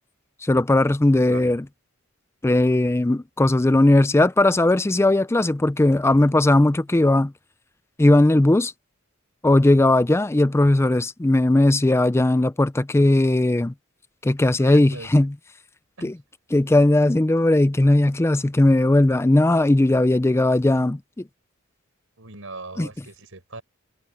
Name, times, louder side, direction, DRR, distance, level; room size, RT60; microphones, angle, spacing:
voice 1, 0.4-1.6 2.4-7.3 8.0-8.7 9.4-13.7 14.2-15.3 16.0-16.2 16.5-21.0 22.8-22.9, left 1 dB, 15° left, 0.4 m, -18 dB
voice 2, 1.1-1.5 14.6-15.3 16.0-16.1 22.2-23.6, right 3 dB, 75° right, 5.1 m, -40 dB
head